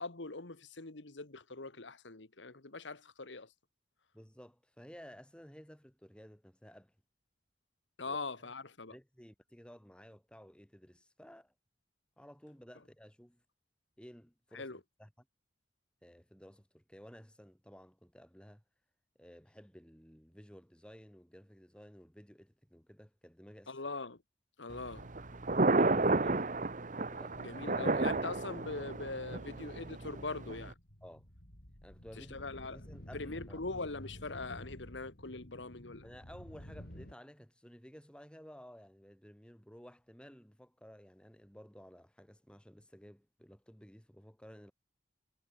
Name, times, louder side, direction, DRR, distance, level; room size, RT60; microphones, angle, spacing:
voice 1, 0.0-3.5 8.0-8.9 14.5-14.8 23.7-24.2 24.6-25.1 27.4-30.7 32.2-32.8 33.1-36.1, left 3 dB, 90° left, 1.8 m, -42 dB
voice 2, 4.1-6.9 8.0-8.5 8.9-11.5 12.2-13.4 14.0-15.1 16.0-18.6 19.2-23.8 25.7-26.7 27.1-27.9 31.0-31.3 31.8-33.6 36.0-44.7, equal, 5° left, 5.0 m, -55 dB
Thunder, 24.7-30.7, right 2 dB, 45° right, 1.3 m, -32 dB
sound 1, 30.7-37.1, equal, 55° left, 5.6 m, -51 dB
head